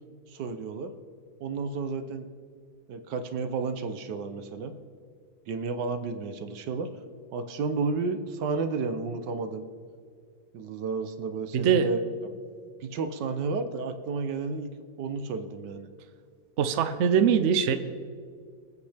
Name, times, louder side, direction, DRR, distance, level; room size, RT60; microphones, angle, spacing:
voice 1, 0.3-0.9 1.4-2.3 2.9-4.7 5.5-6.9 7.3-9.7 10.5-12.4 12.8-14.7 15.0-15.9, right 4 dB, 75° right, 9 dB, 1.5 m, -32 dB
voice 2, 11.5-11.9 16.6-17.7, right 7 dB, 55° right, 9 dB, 0.8 m, -22 dB
25.5 x 8.6 x 3.5 m, 2.2 s
omnidirectional pair, 1.9 m